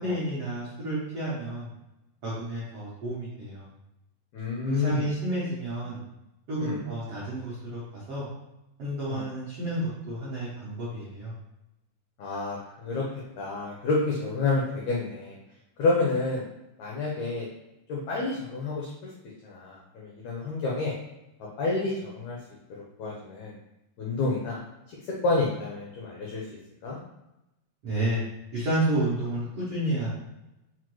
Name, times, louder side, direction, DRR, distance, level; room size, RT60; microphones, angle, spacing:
voice 1, 0.0-1.7 2.2-3.6 4.6-6.0 6.5-8.3 8.8-11.3 27.8-28.2 28.5-30.1, right 1 dB, 80° right, -8 dB, 1.3 m, -30 dB
voice 2, 4.3-5.0 6.6-6.8 9.1-9.2 12.2-13.1 13.4-15.4 15.8-16.4 16.8-17.5 17.9-19.1 19.4-20.9 21.6-22.4 23.0-23.5 24.0-24.6 25.2-26.4 26.8-27.0, left 3 dB, 85° left, -4 dB, 1.6 m, -29 dB
5.7 x 2.3 x 3.0 m, 0.92 s
omnidirectional pair, 4.1 m